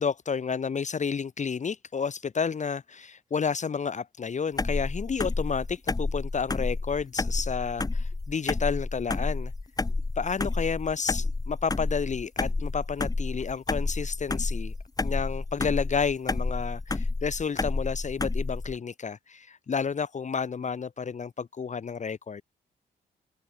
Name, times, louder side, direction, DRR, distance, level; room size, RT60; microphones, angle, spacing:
voice 1, 0.0-9.5 10.2-14.7 15.0-22.4, left 6 dB, 40° left, 1.2 m, -31 dB
sound 1, 4.6-18.7, left 3 dB, 20° left, 1.2 m, -30 dB
open air
cardioid pair, 65°, 18 cm